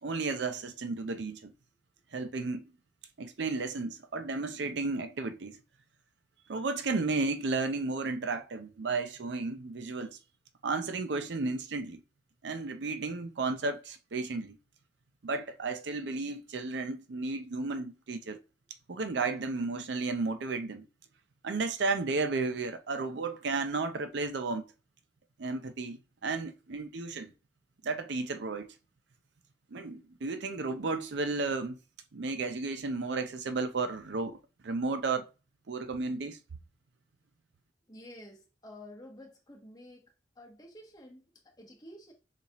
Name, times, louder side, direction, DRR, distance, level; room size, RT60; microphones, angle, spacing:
voice 1, 0.0-1.5 2.1-2.7 3.2-5.6 6.5-10.2 10.6-12.0 12.4-14.6 15.2-18.4 18.9-20.9 21.4-24.7 25.4-27.3 27.8-28.7 29.7-31.8 32.1-34.4 34.6-35.3 35.7-36.4, right 3 dB, 70° right, 0.5 m, -33 dB
voice 2, 37.9-42.1, left 1 dB, 20° left, 1.2 m, -51 dB
7.0 x 2.5 x 2.9 m
head